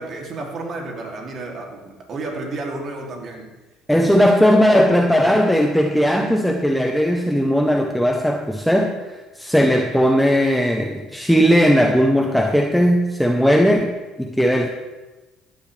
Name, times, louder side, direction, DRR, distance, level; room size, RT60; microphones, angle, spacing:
voice 1, 0.0-3.5 3.9-4.2 4.5-4.7, right 2 dB, 45° right, 0 dB, 2.8 m, -32 dB
voice 2, 3.9-14.7, equal, ahead, 3 dB, 0.9 m, -17 dB
15.5 x 10.5 x 3.4 m, 1.2 s
cardioid pair, 105°, 0 cm